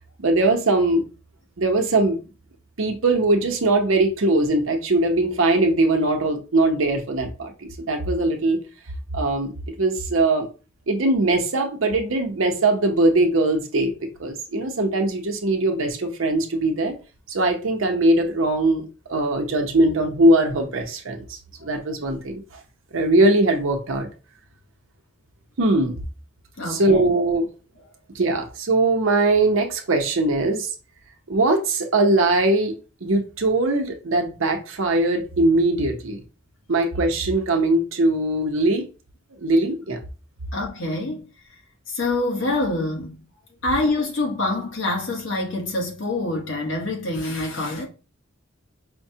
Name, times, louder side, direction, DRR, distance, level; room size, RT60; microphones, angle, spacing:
voice 1, 0.2-1.0 1.6-2.2 2.8-8.6 9.1-9.5 9.8-10.5 10.9-13.9 14.2-16.9 17.3-22.4 22.9-24.1 25.6-26.0 26.7-27.5 28.1-30.7 31.3-32.7 33.0-36.2 36.7-38.9 39.4-40.0, right 2 dB, 75° right, 0.7 m, -21 dB
voice 2, 26.6-27.1 40.5-41.3 41.9-43.2 43.6-47.9, left 2 dB, 65° left, 1.0 m, -26 dB
5.1 x 2.1 x 2.7 m
head